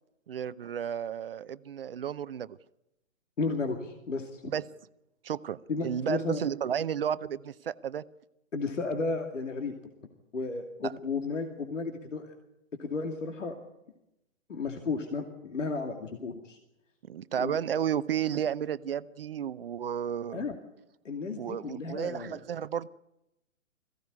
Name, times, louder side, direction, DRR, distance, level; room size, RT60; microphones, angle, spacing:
voice 1, 0.3-2.6 4.4-4.6 5.2-8.0 10.8-10.9 17.1-20.4 21.4-22.9, right 9 dB, 45° right, 17 dB, 0.7 m, -32 dB
voice 2, 3.4-4.5 5.7-6.4 8.5-9.7 10.3-12.3 12.8-13.6 14.5-16.6 17.3-17.6 20.3-20.6 21.0-22.4, left 4 dB, 65° left, 4 dB, 2.6 m, -33 dB
21.5 x 16.0 x 9.7 m, 0.90 s
figure-of-eight pair, 125°, 40 cm